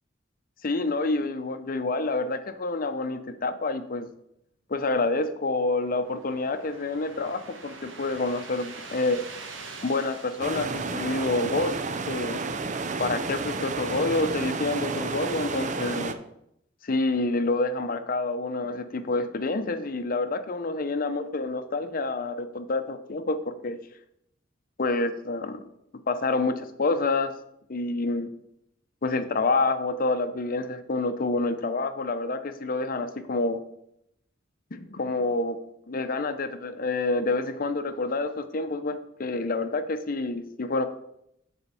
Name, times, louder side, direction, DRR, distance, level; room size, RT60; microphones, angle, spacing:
voice 1, 0.6-4.1 4.7-9.2 9.8-11.8 12.1-12.4 13.0-16.2 16.8-23.8 24.8-25.7 26.1-27.3 27.7-28.3 29.0-33.6 34.7-35.6 35.9-40.9, left 3 dB, 50° left, 9 dB, 0.7 m, -28 dB
sound 1, 5.3-11.7, right 4 dB, 85° right, 1.3 m, -45 dB
sound 2, 10.4-16.1, right 4 dB, 40° right, 0.5 m, -31 dB
7.1 x 4.3 x 6.8 m, 0.78 s
head